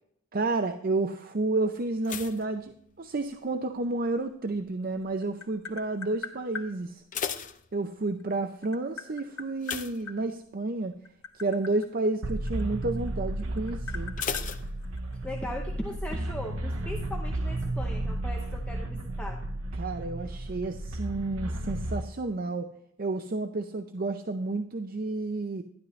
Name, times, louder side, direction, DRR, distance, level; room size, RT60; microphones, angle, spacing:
voice 1, 0.3-7.0 7.7-10.9 11.3-14.1 19.8-22.7 23.0-25.6, right 2 dB, 45° right, 7 dB, 0.6 m, -31 dB
sound 1, 2.0-3.5 3.8-4.3 4.9-5.3 5.5-5.6 6.0-6.1 6.8-8.3 9.6-10.7 11.1-11.4 11.7-11.8 14.2-15.4 15.6-15.7, left 7 dB, 40° left, 0.7 m, -37 dB
Tap, 4.8-6.7 8.0-10.2 10.9-13.1 13.4-15.4, left 6 dB, 90° left, 1.7 m, -41 dB
sound 2, 12.2-22.0, right 1 dB, 85° right, 0.9 m, -33 dB
voice 2, 15.2-19.4, left 1 dB, 5° left, 1 dB, 0.8 m, -38 dB
12.5 x 11.0 x 3.2 m, 0.69 s
head